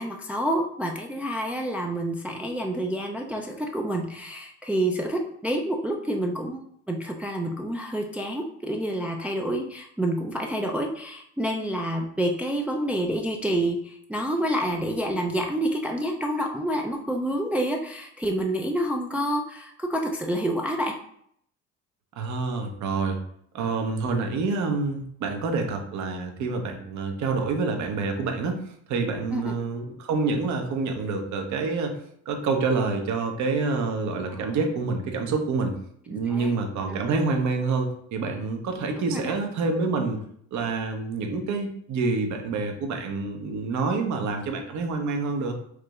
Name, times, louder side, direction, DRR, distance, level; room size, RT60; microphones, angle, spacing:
voice 1, 0.0-20.9 29.3-29.5 34.3-34.5 36.1-36.5 36.9-37.0 39.1-39.3, right 1 dB, 5° right, 1 dB, 0.4 m, -28 dB
voice 2, 22.2-23.2 23.5-32.0 32.3-35.8 36.1-40.2 40.5-45.5, right 4 dB, 55° right, 4 dB, 0.9 m, -27 dB
4.8 x 2.8 x 2.4 m, 0.67 s
hypercardioid pair, 70°, 35 cm